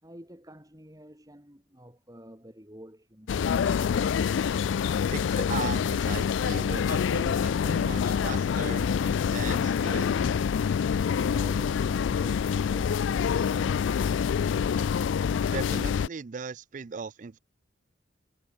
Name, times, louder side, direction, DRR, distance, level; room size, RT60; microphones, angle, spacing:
voice 1, 0.0-4.0 11.2-14.6, equal, 20° right, 7.0 m, -48 dB
sound 1, 3.3-16.1, left 7 dB, 75° left, 0.3 m, -26 dB
voice 2, 5.1-10.5 15.5-17.4, right 5 dB, 40° right, 0.4 m, -38 dB
head